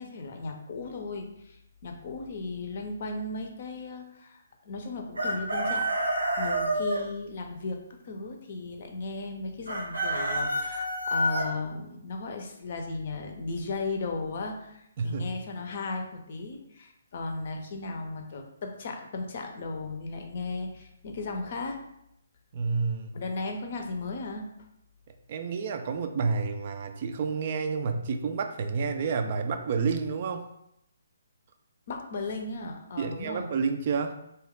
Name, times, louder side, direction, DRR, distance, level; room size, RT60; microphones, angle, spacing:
voice 1, 0.0-5.9 6.4-21.8 23.1-24.5 31.9-33.5, left 3 dB, 50° left, 3 dB, 0.5 m, -36 dB
Chicken rooster, 5.2-7.0 9.7-11.5, right 1 dB, 90° right, 0.9 m, -28 dB
voice 2, 15.0-15.3 22.5-23.2 25.3-30.4 33.0-34.2, right 5 dB, 45° right, 6 dB, 0.3 m, -29 dB
2.8 x 2.3 x 3.5 m, 0.79 s
figure-of-eight pair, 135°, 0 cm